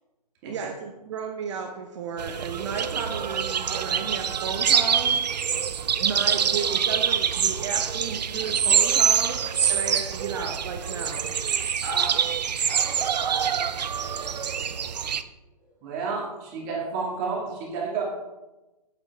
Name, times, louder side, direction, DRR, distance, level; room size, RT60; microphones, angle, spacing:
voice 1, 0.5-5.2 6.0-9.4 9.7-11.3, right 6 dB, 45° right, 4 dB, 0.9 m, -33 dB
sound 1, 2.2-15.2, right 8 dB, 75° right, 0.5 m, -25 dB
voice 2, 11.8-12.2 15.8-18.0, right 4 dB, 30° right, -2 dB, 2.2 m, -31 dB
voice 3, 12.6-13.7 14.9-15.3 15.6-15.8, left 1 dB, 20° left, -4 dB, 2.9 m, -43 dB
8.3 x 8.0 x 3.4 m, 1.0 s
hypercardioid pair, 135°, 21 cm